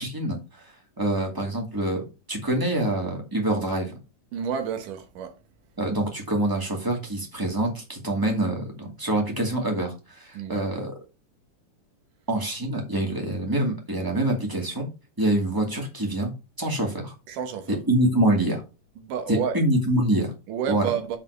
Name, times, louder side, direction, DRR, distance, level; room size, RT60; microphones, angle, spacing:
voice 1, 0.0-2.0 2.3-3.9 5.8-10.9 12.3-14.9 15.2-16.3 16.6-17.1 17.7-18.6 19.3-20.3 20.7-20.9, right 1 dB, 10° right, 1.7 m, -25 dB
voice 2, 4.3-5.3 10.3-10.6 17.3-17.8 19.0-19.6 20.5-21.2, right 7 dB, 75° right, 2.7 m, -30 dB
7.4 x 4.2 x 6.6 m
omnidirectional pair, 3.9 m